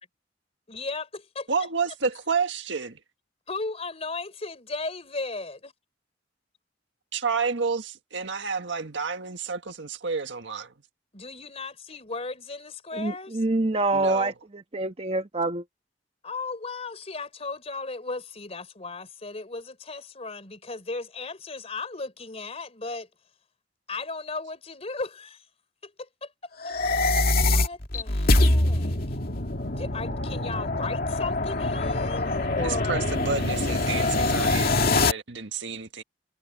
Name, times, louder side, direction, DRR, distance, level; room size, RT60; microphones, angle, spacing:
voice 1, 0.7-1.5 3.5-5.7 11.1-13.4 16.2-23.1 23.9-25.5 25.8-29.2 29.7-33.1, left 3 dB, 35° left, 3.7 m, -36 dB
voice 2, 1.5-3.0 7.1-10.7 13.9-14.3 32.6-36.0, right 5 dB, 75° right, 1.7 m, -30 dB
voice 3, 12.9-15.6, right 2 dB, 35° right, 1.3 m, -26 dB
sound 1, 26.6-35.1, left 2 dB, 55° left, 2.3 m, -24 dB
head